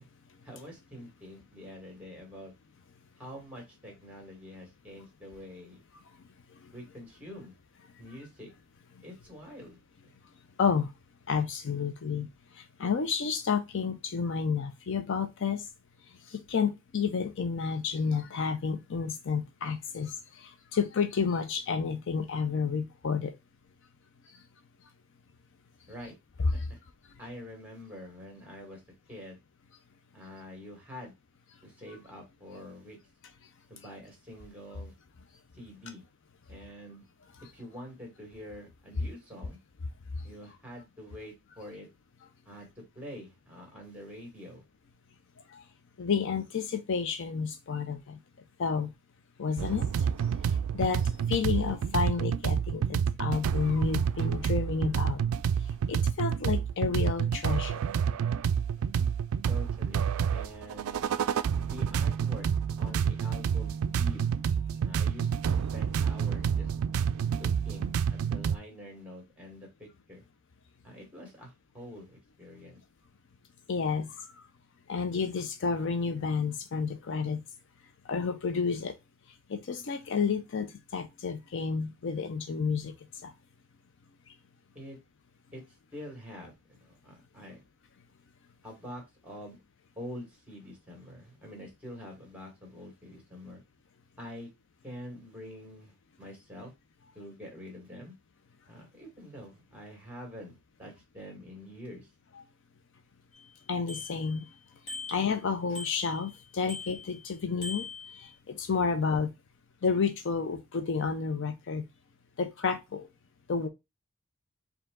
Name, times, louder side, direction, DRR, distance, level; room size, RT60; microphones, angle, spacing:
voice 1, 0.4-2.5 3.2-5.8 6.7-7.5 8.0-8.5 9.0-9.8 25.9-26.1 26.5-26.8 27.2-28.8 29.1-29.4 30.1-31.1 31.6-33.0 33.7-34.9 35.5-36.0 36.5-37.1 37.5-39.6 40.2-41.9 42.5-44.6 58.8-59.1 59.5-60.1 60.3-61.0 61.6-62.5 62.8-64.3 64.8-66.7 67.3-70.2 70.8-72.1 72.4-72.8 84.7-85.0 85.5-85.6 85.9-87.6 88.6-89.6 90.0-93.6 94.2-94.5 94.8-95.9 96.2-96.7 97.2-98.2 98.7-102.1, equal, 5° right, 1.8 m, -46 dB
voice 2, 10.6-10.9 11.3-12.3 12.5-15.6 16.3-23.3 26.4-26.7 45.5-45.6 46.0-48.2 48.6-48.9 49.4-49.9 50.5-55.2 55.9-57.8 73.7-74.2 74.9-77.4 78.1-78.9 79.5-82.9 83.2-83.3 103.7-104.4 105.1-107.9 108.2-109.3 109.8-111.8 112.4-113.1 113.5-113.7, left 5 dB, 55° left, 0.5 m, -30 dB
sound 1, 49.6-68.6, right 7 dB, 70° right, 0.3 m, -29 dB
Bicycle bell, 103.3-103.4 103.9-104.5 104.9-105.4 105.8-106.4 106.7-107.2 107.6-108.3, left 3 dB, 35° left, 1.7 m, -41 dB
4.5 x 2.8 x 3.7 m
head